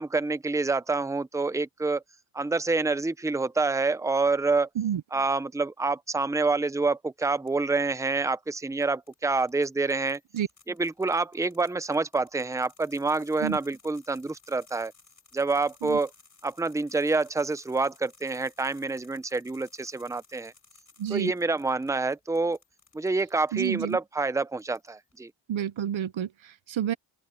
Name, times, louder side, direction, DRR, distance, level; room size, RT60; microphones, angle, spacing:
voice 1, 0.0-2.0 2.3-4.7 5.1-10.2 10.7-14.9 15.3-16.1 16.4-20.5 21.1-22.6 22.9-25.3, right 3 dB, 5° right, 0.6 m, -27 dB
sound 1, 7.5-7.9 8.6-24.0 24.4-25.2, left 4 dB, 40° left, 6.1 m, -59 dB
voice 2, 21.0-21.3 23.5-24.0 25.5-26.9, right 10 dB, 75° right, 0.7 m, -29 dB
open air
wide cardioid pair, 90°, 47 cm